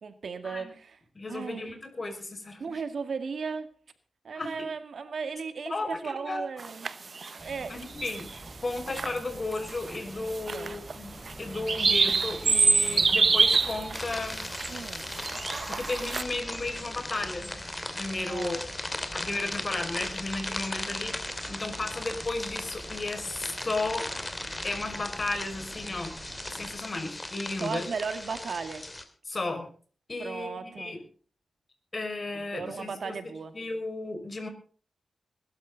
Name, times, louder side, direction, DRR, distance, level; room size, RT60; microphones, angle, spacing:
voice 1, 0.0-1.0 1.3-1.7 2.6-3.7 4.2-6.9 7.3-7.8 10.2-10.7 14.7-15.0 18.2-18.6 27.6-28.9 30.2-31.0 32.3-33.6, right 5 dB, 70° right, 9 dB, 1.9 m, -36 dB
voice 2, 1.1-2.8 4.3-4.7 5.7-6.4 7.3-7.4 7.7-14.5 15.7-17.5 17.9-18.6 19.1-24.1 24.6-26.1 26.5-27.9 29.3-29.7 30.1-31.0 31.9-33.2 33.5-34.5, left 2 dB, 35° left, 5 dB, 5.8 m, -34 dB
sound 1, 6.6-7.3 7.8-8.4 8.7-9.2 9.5-10.0 10.3-10.9 11.3-16.2, right 4 dB, 50° right, 0.9 m, -26 dB
sound 2, 7.4-26.8, right 1 dB, ahead, 5.4 m, -46 dB
sound 3, 13.9-29.0, left 1 dB, 15° left, 2.7 m, -38 dB
20.5 x 13.0 x 4.0 m, 0.42 s
wide cardioid pair, 95°, 0 cm